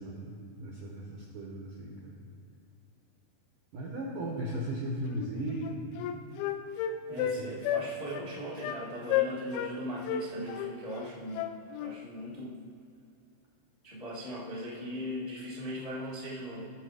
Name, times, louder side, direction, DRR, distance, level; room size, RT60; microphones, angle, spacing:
voice 1, 0.0-2.1 3.7-5.9 7.1-7.6, right 1 dB, 75° right, -2 dB, 1.9 m, -37 dB
Wind instrument woodwind instrument, 5.1-5.3 5.6-7.4 7.6-7.9 8.1-8.3 8.6-8.8 9.1-9.7 10.1-11.9, left 11 dB, 85° left, 2.9 m, -32 dB
voice 2, 7.1-11.5 11.8-12.6 13.8-16.6, equal, 60° left, -7 dB, 0.3 m, -39 dB
16.5 x 6.9 x 5.0 m, 2.5 s
omnidirectional pair, 5.6 m